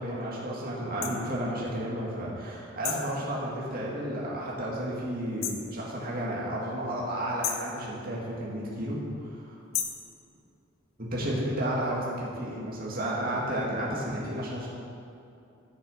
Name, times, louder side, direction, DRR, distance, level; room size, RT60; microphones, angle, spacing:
voice 1, 0.0-9.6 11.0-14.7, right 1 dB, 45° right, -5 dB, 2.1 m, -32 dB
sound 1, 1.0-1.2 2.8-3.1 5.4-5.7 7.4-7.7 9.7-10.1, left 8 dB, 90° left, 0.9 m, -32 dB
14.0 x 6.8 x 5.0 m, 2.6 s
head